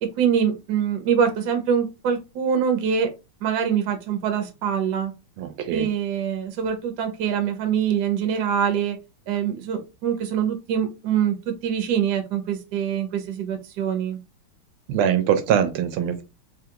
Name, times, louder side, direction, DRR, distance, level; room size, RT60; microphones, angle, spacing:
voice 1, 0.0-3.1 3.4-5.1 5.7-9.0 9.3-11.3 11.6-14.2, right 8 dB, 60° right, 1.2 m, -24 dB
voice 2, 5.4-5.9 14.9-16.2, right 9 dB, 85° right, 1.4 m, -22 dB
3.6 x 2.4 x 2.8 m
omnidirectional pair, 2.3 m